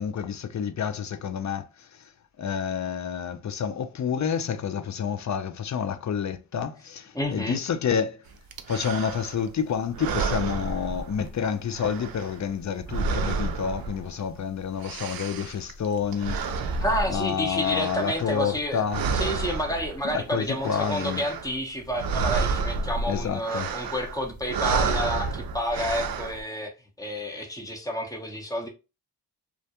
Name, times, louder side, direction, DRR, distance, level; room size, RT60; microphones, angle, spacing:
voice 1, 0.0-2.1 2.4-8.2 8.7-16.4 17.1-19.0 20.0-21.2 23.1-23.7, left 7 dB, 45° left, 0.4 m, -29 dB
voice 2, 7.1-7.6 16.8-18.8 19.1-28.7, equal, 10° left, 0.8 m, -30 dB
sound 1, 8.5-9.5 9.9-11.4 11.7-14.4 14.6-18.6 18.9-20.2 20.5-21.6 21.8-26.4, right 4 dB, 60° right, 0.5 m, -30 dB
2.4 x 2.1 x 2.8 m
cardioid pair, 50°, 42 cm